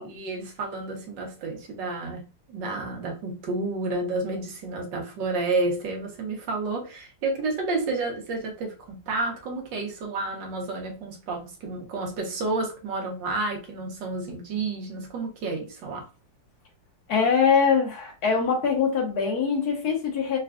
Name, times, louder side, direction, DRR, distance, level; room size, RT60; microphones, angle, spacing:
voice 1, 0.0-16.1, right 3 dB, 75° right, 1.6 m, -30 dB
voice 2, 17.1-20.4, left 6 dB, 60° left, 1.4 m, -23 dB
4.2 x 2.3 x 2.3 m
omnidirectional pair, 2.0 m